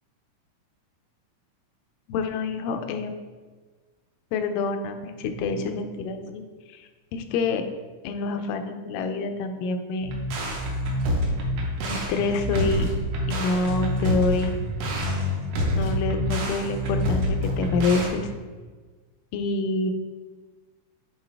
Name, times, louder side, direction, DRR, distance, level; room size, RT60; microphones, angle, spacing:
voice 1, 2.1-3.1 4.3-6.4 6.7-7.7 8.0-10.1 11.8-12.9 13.3-14.5 15.7-18.3 19.3-19.9, left 3 dB, 90° left, 7 dB, 2.2 m, -27 dB
sound 1, 10.0-18.1, left 1 dB, 70° right, 1.5 m, -27 dB
7.9 x 3.9 x 3.4 m, 1.4 s
omnidirectional pair, 3.7 m